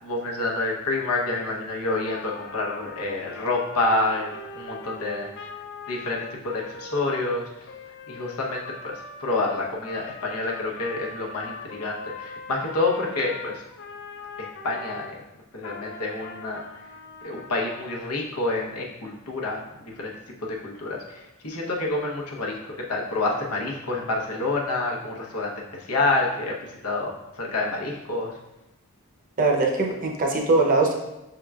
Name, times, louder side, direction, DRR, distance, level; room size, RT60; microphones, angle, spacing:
voice 1, 0.0-4.3 4.5-5.3 5.9-7.5 8.1-13.6 14.4-15.2 15.5-16.8 17.2-20.1 20.4-28.4, left 2 dB, 75° left, -2 dB, 0.9 m, -28 dB
Trumpet, 2.1-15.1 15.6-18.1, left 3 dB, 55° left, 0.4 m, -41 dB
voice 2, 29.4-30.9, right 3 dB, 40° right, 0 dB, 0.7 m, -21 dB
5.8 x 3.7 x 2.3 m, 0.95 s
head